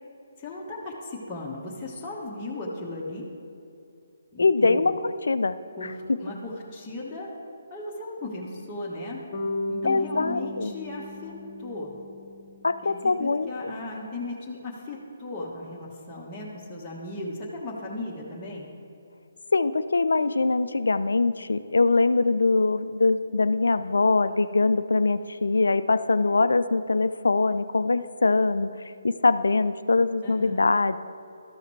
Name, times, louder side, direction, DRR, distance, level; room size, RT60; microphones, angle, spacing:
voice 1, 0.4-3.3 4.3-4.9 5.8-7.3 7.7-9.2 9.7-11.9 12.8-18.7 30.2-30.6, left 2 dB, 10° left, -8 dB, 1.2 m, -36 dB
voice 2, 4.4-5.6 9.8-10.7 12.6-13.5 19.5-28.7 29.0-31.0, left 3 dB, 70° left, 13 dB, 0.3 m, -23 dB
Bass guitar, 9.3-13.4, left 1 dB, 35° left, 1.0 m, -36 dB
13.0 x 5.6 x 4.6 m, 2.7 s
figure-of-eight pair, 140°, 0 cm